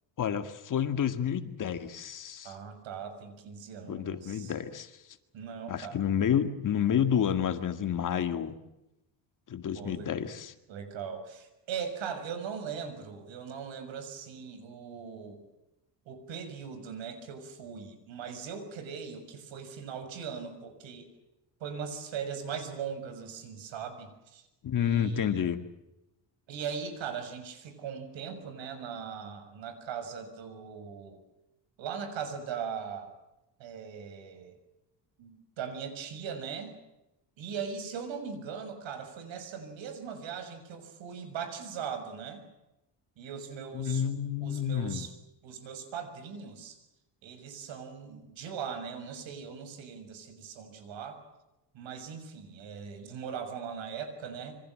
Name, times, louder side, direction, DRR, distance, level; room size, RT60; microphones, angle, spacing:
voice 1, 0.2-2.5 3.9-4.9 5.7-8.5 9.5-10.5 24.6-25.6 43.7-45.1, left 8 dB, 40° left, 9 dB, 2.0 m, -29 dB
voice 2, 2.4-4.5 5.3-6.0 9.7-10.1 10.7-15.4 16.0-21.1 21.6-24.5 24.8-25.4 26.5-31.2 31.8-33.1 33.6-34.5 35.2-36.8 37.4-42.4 43.2-45.1 45.4-46.8 47.2-51.2 51.7-54.6, right 7 dB, 75° right, 9 dB, 6.6 m, -40 dB
27.0 x 25.0 x 7.6 m, 0.92 s
cardioid pair, 155°, 45 cm